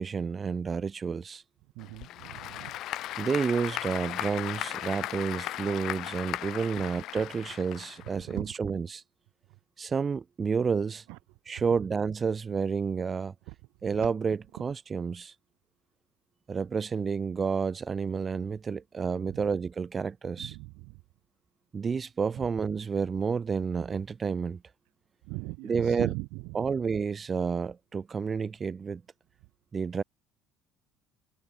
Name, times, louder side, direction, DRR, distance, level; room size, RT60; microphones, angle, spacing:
voice 1, 0.0-1.4 3.2-9.0 9.8-11.0 11.5-13.3 13.8-15.3 16.5-20.5 21.7-24.6 25.6-26.1 26.5-29.0 29.7-30.0, right 5 dB, 30° right, 5.7 m, -30 dB
voice 2, 1.7-2.8 6.7-6.8 8.3-8.5 11.1-11.2 13.5-13.6 19.3-19.5 20.4-21.0 22.3-22.5 25.2-26.6, right 28 dB, 75° right, 4.4 m, -39 dB
Applause / Crowd, 1.8-8.4, left 14 dB, 65° left, 1.1 m, -37 dB
supercardioid pair, 80°, 0 cm